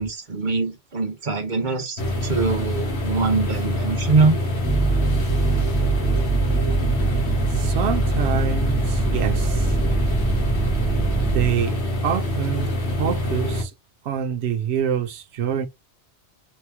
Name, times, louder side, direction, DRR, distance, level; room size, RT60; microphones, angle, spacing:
voice 1, 0.0-4.4, right 3 dB, 45° right, 1.1 m, -23 dB
sound 1, 2.0-13.6, left 1 dB, 70° left, 1.7 m, -25 dB
sound 2, 4.6-11.5, right 4 dB, 10° right, 0.5 m, -23 dB
voice 2, 6.4-9.8 11.3-11.8 12.0-12.7 13.0-13.7 14.0-15.7, right 8 dB, 70° right, 0.9 m, -27 dB
4.2 x 3.0 x 3.4 m
omnidirectional pair, 1.2 m